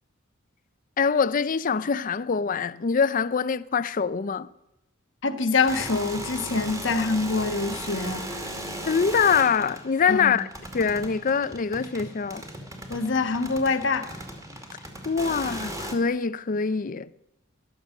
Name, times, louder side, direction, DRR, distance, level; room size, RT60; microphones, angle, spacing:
voice 1, 1.0-4.5 8.9-10.5 10.7-12.4 15.0-17.1, left 6 dB, 45° left, 0.5 m, -24 dB
voice 2, 5.2-8.3 10.1-10.4 12.9-14.1, left 4 dB, 65° left, 1.3 m, -25 dB
sound 1, 5.6-15.9, right 1 dB, 15° right, 2.4 m, -37 dB
14.5 x 11.5 x 6.5 m
head